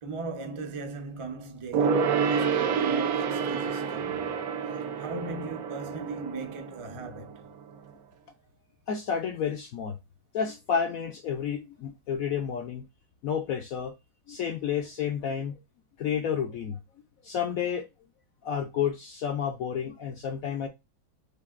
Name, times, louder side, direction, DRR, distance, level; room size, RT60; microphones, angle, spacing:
voice 1, 0.0-4.3 5.0-7.5, right 4 dB, 45° right, 0.4 m, -38 dB
Gong, 1.7-7.6 7.9-8.0, right 6 dB, 65° right, 0.9 m, -28 dB
voice 2, 8.9-10.0 10.3-12.8 13.2-13.9 14.3-15.6 16.0-16.8 17.2-17.9 18.4-20.7, left 7 dB, 70° left, 0.8 m, -30 dB
6.4 x 2.9 x 2.4 m
omnidirectional pair, 2.1 m